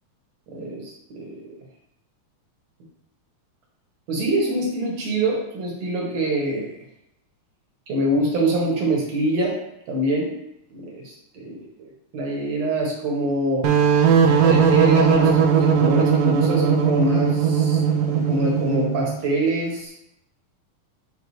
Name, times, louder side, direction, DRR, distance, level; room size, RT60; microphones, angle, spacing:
voice 1, 0.5-1.6 4.1-6.8 7.9-9.6 9.9-10.4 10.7-11.9 12.1-13.7 14.1-17.8 18.1-19.9, right 1 dB, 60° right, -2 dB, 2.4 m, -25 dB
sound 1, 13.6-19.1, right 7 dB, 90° right, 2.3 m, -18 dB
6.6 x 5.4 x 3.2 m, 0.81 s
omnidirectional pair, 3.8 m